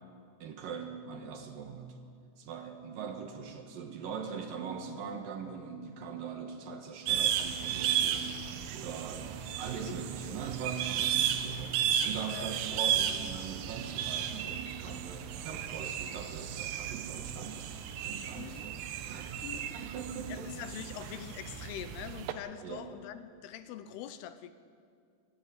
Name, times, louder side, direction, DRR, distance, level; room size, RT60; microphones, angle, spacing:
voice 1, 0.4-2.0 2.4-17.6 18.0-18.8 19.1-20.5 22.6-22.9, right 6 dB, 65° right, 5 dB, 2.8 m, -41 dB
sound 1, 7.1-22.3, right 9 dB, 85° right, 3.1 m, -34 dB
voice 2, 19.4-19.7 20.3-24.5, left 10 dB, 80° left, 11 dB, 2.7 m, -44 dB
24.5 x 14.0 x 9.5 m, 2.3 s
omnidirectional pair, 4.8 m